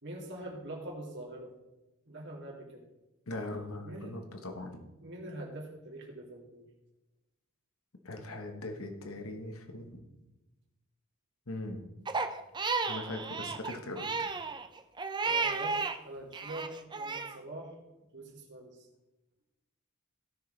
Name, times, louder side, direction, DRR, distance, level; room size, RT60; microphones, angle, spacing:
voice 1, 0.0-1.5 2.1-2.9 3.8-4.1 5.0-6.7 15.2-17.7 18.1-18.9, right 1 dB, 55° right, -1 dB, 2.7 m, -44 dB
voice 2, 3.3-4.8 8.0-10.0 11.5-11.8 12.9-14.3, left 2 dB, 70° left, 5 dB, 1.3 m, -40 dB
Crying sobbing, 12.1-16.0 16.3-17.4, right 4 dB, 20° right, 0.5 m, -33 dB
16.5 x 6.7 x 3.4 m, 1.0 s
head